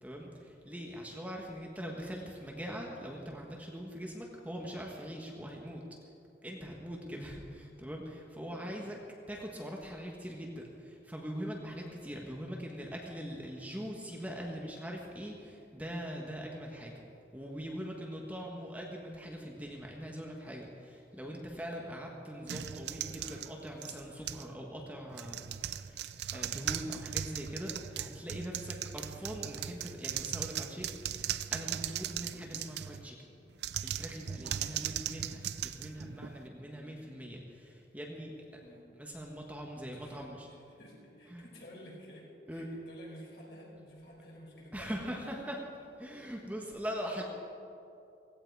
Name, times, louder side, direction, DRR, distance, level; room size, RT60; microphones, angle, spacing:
voice 1, 0.0-5.8 6.4-9.0 9.3-16.9 17.3-33.2 33.8-38.3 39.0-40.5 41.3-41.4 42.5-42.7 44.7-45.6 46.0-47.2, equal, 10° right, -1 dB, 1.4 m, -42 dB
voice 2, 7.0-7.5 8.4-9.1 36.7-37.0 38.6-38.9 39.9-45.3, equal, 65° left, -3 dB, 4.9 m, -53 dB
sound 1, 22.5-24.5 25.1-33.0 33.5-36.5, right 10 dB, 65° right, 0.5 m, -38 dB
17.0 x 16.5 x 4.8 m, 2.6 s
head